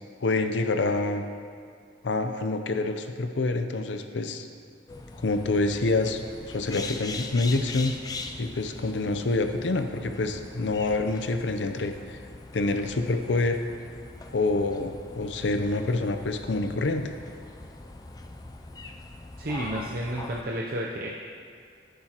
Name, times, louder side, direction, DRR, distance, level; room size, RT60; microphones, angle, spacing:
voice 1, 0.2-1.2 2.0-4.5 5.2-6.2 6.5-7.9 8.4-12.2 12.5-13.6 14.3-17.0, left 2 dB, 90° left, 7 dB, 0.6 m, -27 dB
sound 1, 4.9-20.4, left 3 dB, 20° left, 0.4 m, -42 dB
voice 2, 19.4-21.1, right 1 dB, 55° right, -2 dB, 0.6 m, -31 dB
10.5 x 8.8 x 2.9 m, 2.2 s
head